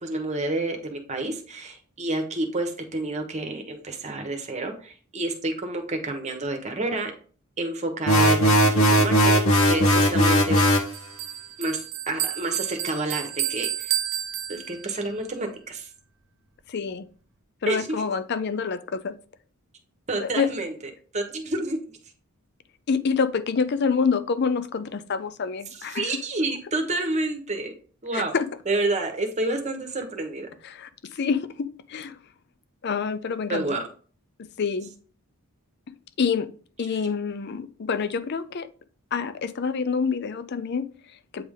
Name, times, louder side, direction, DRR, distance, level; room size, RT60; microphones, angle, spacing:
voice 1, 0.0-7.1 7.6-10.6 11.6-13.9 14.5-15.9 17.7-18.0 20.1-20.7 21.1-21.8 25.9-27.7 28.0-28.3 28.7-30.5 33.5-33.8, right 2 dB, 30° right, 4 dB, 1.1 m, -29 dB
sound 1, 8.1-10.9, equal, 75° left, 1.1 m, -18 dB
Bell, 10.6-15.1, right 11 dB, 60° right, 0.6 m, -31 dB
voice 2, 16.7-17.1 17.6-19.2 20.2-20.5 22.9-26.0 28.1-28.5 30.6-32.2 32.8-33.8 34.4-34.9 36.2-36.5 36.8-38.7 39.1-41.4, left 5 dB, 50° left, 13 dB, 0.4 m, -27 dB
8.6 x 3.4 x 3.6 m, 0.41 s
head